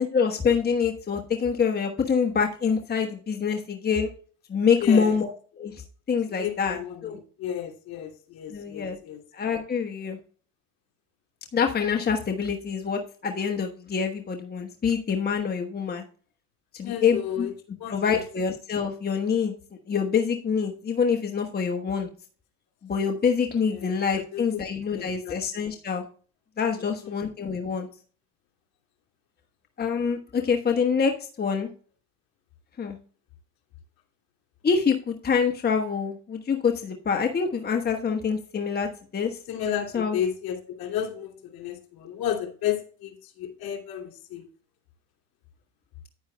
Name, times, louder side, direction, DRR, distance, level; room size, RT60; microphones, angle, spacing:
voice 1, 0.0-4.1 4.5-5.8 6.1-7.2 8.5-9.0 9.3-10.2 11.5-16.0 16.7-17.5 17.9-19.5 19.9-22.1 22.8-26.0 26.6-27.9 29.8-31.7 32.8-33.0 34.6-38.9 39.1-39.4 39.9-40.2, left 6 dB, 20° left, 4 dB, 1.2 m, -26 dB
voice 2, 4.8-5.1 6.3-9.2 16.8-17.5 17.8-18.2 23.7-23.9 24.3-24.6 24.9-25.7 27.0-27.2 39.5-44.5, left 9 dB, 55° left, 3 dB, 2.9 m, -32 dB
9.7 x 9.4 x 2.2 m, 0.41 s
supercardioid pair, 90°, 42 cm